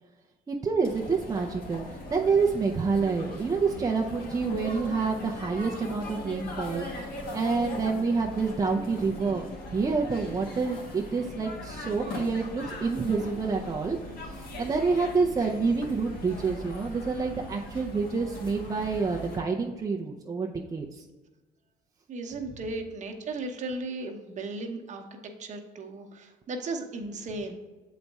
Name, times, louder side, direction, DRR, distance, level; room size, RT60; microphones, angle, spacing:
voice 1, 0.5-21.1, right 4 dB, 20° right, 0 dB, 0.6 m, -28 dB
sound 1, 0.8-19.4, left 1 dB, 60° left, 1.5 m, -40 dB
voice 2, 22.1-27.5, right 2 dB, 45° right, 3 dB, 1.0 m, -36 dB
7.6 x 4.1 x 3.5 m, 1.2 s
cardioid pair, 110°, 17 cm